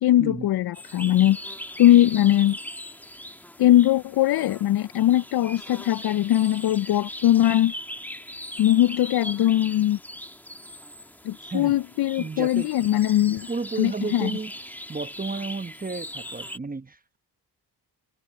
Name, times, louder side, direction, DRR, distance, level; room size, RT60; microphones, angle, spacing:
voice 1, 0.0-1.4 1.8-2.6 3.6-7.7 8.6-10.0 11.2-13.5 13.8-14.3, left 13 dB, 65° left, 0.5 m, -20 dB
sound 1, 0.7-16.6, equal, 5° left, 1.7 m, -40 dB
voice 2, 12.2-12.7 13.5-14.5 14.9-17.2, right 4 dB, 20° right, 1.0 m, -32 dB
cardioid pair, 70°, 42 cm